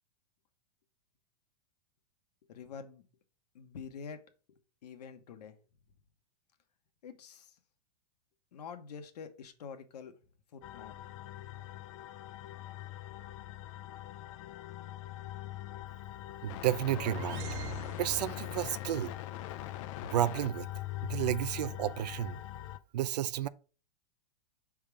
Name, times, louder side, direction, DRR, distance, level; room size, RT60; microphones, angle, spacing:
voice 1, 2.5-3.0 3.5-4.2 4.8-5.6 7.0-7.6 8.5-10.1 10.5-11.0, left 6 dB, 80° left, 1.1 m, -46 dB
sound 1, 10.6-22.8, left 15 dB, 50° left, 0.5 m, -42 dB
voice 2, 16.4-17.4 18.0-19.1 20.0-20.7 21.0-22.4 22.9-23.5, right 12 dB, 85° right, 0.4 m, -31 dB
sound 2, 16.5-18.8, right 12 dB, 45° right, 0.7 m, -45 dB
5.6 x 3.6 x 4.8 m
hypercardioid pair, 135°, 20 cm